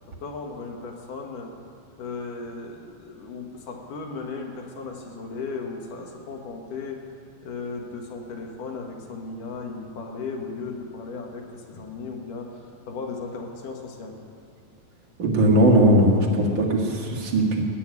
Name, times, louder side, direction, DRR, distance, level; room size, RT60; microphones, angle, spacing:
voice 1, 0.1-1.5 2.0-7.0 7.4-14.2, left 4 dB, 65° left, 2 dB, 2.8 m, -36 dB
voice 2, 15.2-17.6, right 1 dB, 40° right, -1 dB, 1.9 m, -19 dB
18.0 x 7.0 x 9.6 m, 2.4 s
omnidirectional pair, 4.2 m